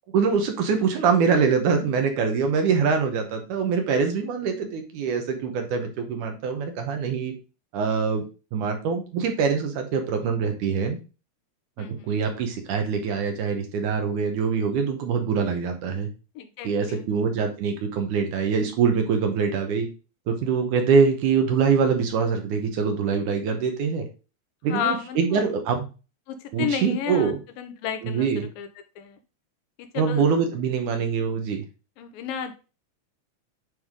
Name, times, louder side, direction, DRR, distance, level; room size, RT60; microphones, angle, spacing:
voice 1, 0.1-7.3 7.7-8.2 8.5-11.0 11.8-16.1 16.6-19.9 20.3-24.1 24.6-25.9 26.5-27.4 28.0-28.5 29.9-31.6, right 5 dB, 70° right, 4 dB, 2.2 m, -24 dB
voice 2, 11.8-12.2 16.4-17.1 24.7-25.4 26.3-28.7 29.0-29.2 29.8-30.3 32.0-32.5, left 8 dB, 80° left, 9 dB, 2.5 m, -32 dB
9.4 x 3.5 x 3.6 m, 0.32 s
omnidirectional pair, 4.1 m